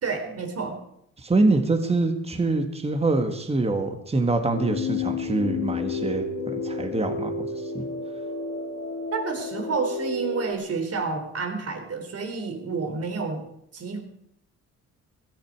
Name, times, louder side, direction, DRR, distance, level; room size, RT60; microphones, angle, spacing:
voice 1, 0.0-0.8 9.1-13.5 13.7-14.0, right 4 dB, 55° right, 6 dB, 3.6 m, -29 dB
voice 2, 1.2-7.9, right 2 dB, 20° right, 6 dB, 1.8 m, -25 dB
sound 1, 4.5-10.5, left 4 dB, 80° left, 1.7 m, -31 dB
16.5 x 14.5 x 4.8 m, 0.73 s
cardioid pair, 90°, 30 cm